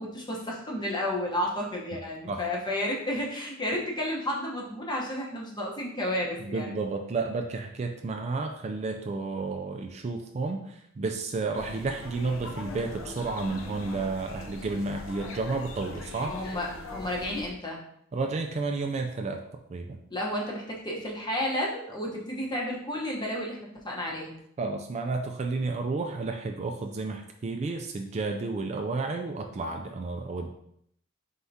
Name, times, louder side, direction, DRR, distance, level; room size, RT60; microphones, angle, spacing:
voice 1, 0.0-6.7 16.3-17.8 20.1-24.4, left 1 dB, 20° left, -2 dB, 0.9 m, -32 dB
voice 2, 6.4-16.4 18.1-19.4 19.7-20.0 24.6-30.5, right 3 dB, 35° right, 4 dB, 0.3 m, -31 dB
sound 1, 11.5-17.5, left 2 dB, 75° left, 0.6 m, -41 dB
4.4 x 3.5 x 2.7 m, 0.72 s
head